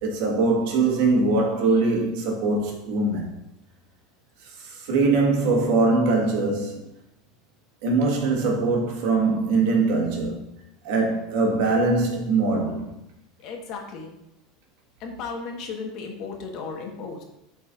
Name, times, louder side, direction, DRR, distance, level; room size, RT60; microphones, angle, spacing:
voice 1, 0.0-3.2 4.4-6.9 7.8-10.5 10.8-12.9, right 3 dB, 70° right, 1.6 m, -22 dB
voice 2, 13.4-14.2 15.0-17.2, left 4 dB, 50° left, 1.3 m, -35 dB
10.5 x 4.3 x 2.5 m
supercardioid pair, 125°, 0 cm